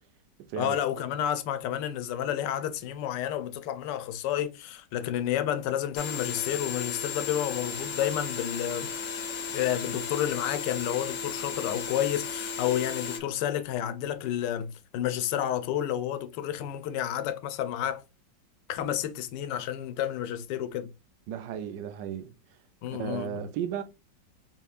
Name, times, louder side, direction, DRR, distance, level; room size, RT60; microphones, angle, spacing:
voice 1, 0.6-8.9 9.5-18.0 18.7-20.9 22.8-23.4, left 11 dB, 80° left, 1.2 m, -30 dB
sound 1, 6.0-13.2, left 6 dB, 60° left, 0.8 m, -35 dB
voice 2, 21.3-22.3 22.9-23.8, right 10 dB, 80° right, 1.2 m, -34 dB
4.2 x 3.7 x 2.4 m
omnidirectional pair, 1.9 m